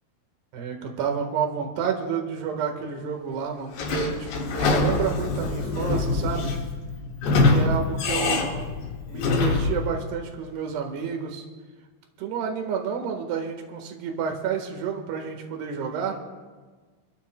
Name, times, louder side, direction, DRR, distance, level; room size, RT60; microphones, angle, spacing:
voice 1, 0.5-6.5 7.4-8.5 9.1-11.4 12.2-16.2, right 7 dB, 80° right, 3 dB, 3.5 m, -30 dB
Sliding door / Squeak, 3.7-9.9, left 3 dB, 85° left, 3.7 m, -24 dB
29.0 x 13.5 x 2.2 m, 1.4 s
omnidirectional pair, 4.7 m